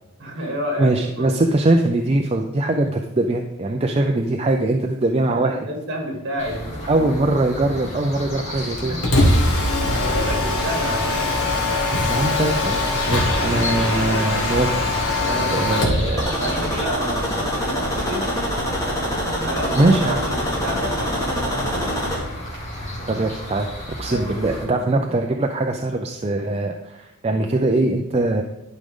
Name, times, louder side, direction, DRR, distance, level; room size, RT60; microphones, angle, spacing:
voice 1, 0.2-1.6 5.3-7.3 8.9-9.0 9.8-11.2 15.2-18.3 19.4-21.9 24.1-24.8, equal, 50° right, 0 dB, 2.5 m, -30 dB
voice 2, 0.8-5.6 6.9-8.9 12.1-14.7 15.5-16.3 19.8-20.2 23.1-23.7 24.0-28.4, right 2 dB, 30° right, 3 dB, 0.5 m, -21 dB
sound 1, 6.4-24.6, left 1 dB, 30° left, 2.7 m, -33 dB
Mechanisms, 8.8-16.1, left 2 dB, 80° left, 1.7 m, -21 dB
sound 2, 16.2-22.2, equal, 15° left, 2.1 m, -25 dB
12.0 x 5.3 x 3.7 m, 0.94 s
head